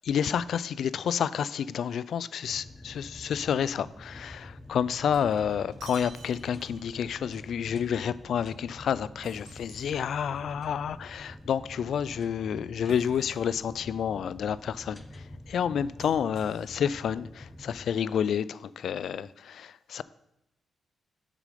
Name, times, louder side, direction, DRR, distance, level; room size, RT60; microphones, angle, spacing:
voice 1, 0.0-20.0, left 8 dB, 70° left, 0.3 m, -29 dB
sound 1, 2.4-17.9, left 1 dB, 10° left, 0.8 m, -47 dB
Shatter, 4.9-7.0 9.2-10.5 12.9-13.7 16.0-17.1, right 5 dB, 90° right, 1.3 m, -51 dB
7.7 x 6.3 x 5.0 m
cardioid pair, 105°, 0 cm